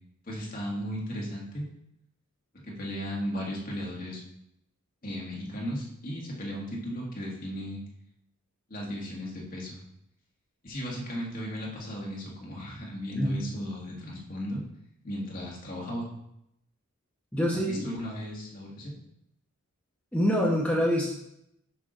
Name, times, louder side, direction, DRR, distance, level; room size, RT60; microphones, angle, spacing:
voice 1, 0.3-1.6 2.6-4.2 5.0-7.8 8.7-9.8 10.6-14.6 15.0-16.1 17.5-18.9, equal, 40° left, -3 dB, 1.7 m, -35 dB
voice 2, 13.1-13.4 17.3-17.9 20.1-21.1, equal, 5° left, -3 dB, 0.8 m, -25 dB
5.8 x 5.5 x 3.8 m, 0.79 s
head